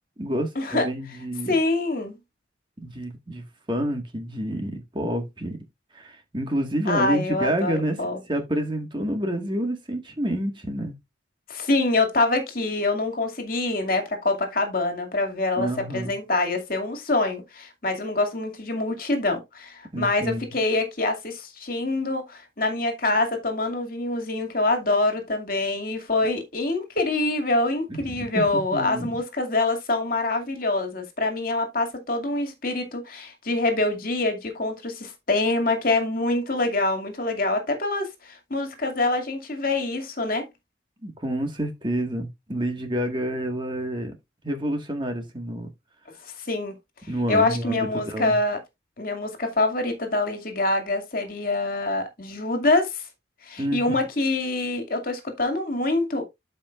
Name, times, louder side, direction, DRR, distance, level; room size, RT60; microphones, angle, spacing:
voice 1, 0.2-1.5 2.8-5.6 5.9-8.0 8.3-10.9 15.6-16.1 19.9-20.4 27.9-28.0 28.3-29.2 41.0-44.1 44.4-45.7 47.1-48.4 53.6-53.9, right 1 dB, 25° right, 1.7 m, -28 dB
voice 2, 1.5-2.2 6.9-8.2 11.5-40.5 46.5-46.7 47.3-48.6 49.0-53.0 53.4-56.3, left 2 dB, 50° left, 2.4 m, -25 dB
13.0 x 5.2 x 2.5 m
head